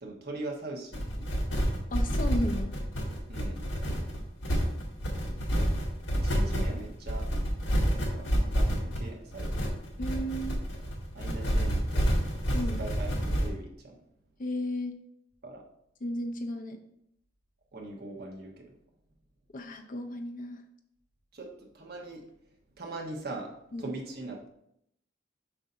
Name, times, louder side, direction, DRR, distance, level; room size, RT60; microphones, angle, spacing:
voice 1, 0.0-1.5 3.3-3.7 5.4-5.7 6.1-7.3 7.9-9.6 11.1-12.2 12.8-14.0 15.4-15.6 17.7-18.7 21.3-22.2 22.8-23.5 23.8-24.5, right 2 dB, 55° right, 0 dB, 1.2 m, -41 dB
sound 1, 0.9-13.5, equal, 75° left, 1.6 m, -29 dB
voice 2, 1.9-2.7 10.0-10.6 12.5-12.8 14.4-15.0 16.0-16.8 19.5-20.6 23.7-23.9, left 1 dB, 45° left, 6 dB, 0.6 m, -34 dB
7.3 x 2.7 x 5.5 m, 0.75 s
head